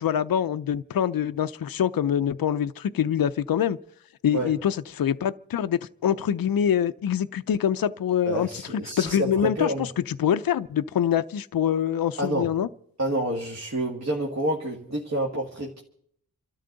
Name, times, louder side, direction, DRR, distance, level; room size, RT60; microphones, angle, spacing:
voice 1, 0.0-3.8 4.2-8.6 9.0-12.7, left 9 dB, 70° left, 0.5 m, -25 dB
voice 2, 8.3-9.9 12.2-12.5 13.0-15.8, right 1 dB, 45° right, 1.8 m, -28 dB
28.0 x 13.0 x 3.9 m
wide cardioid pair, 85°, 37 cm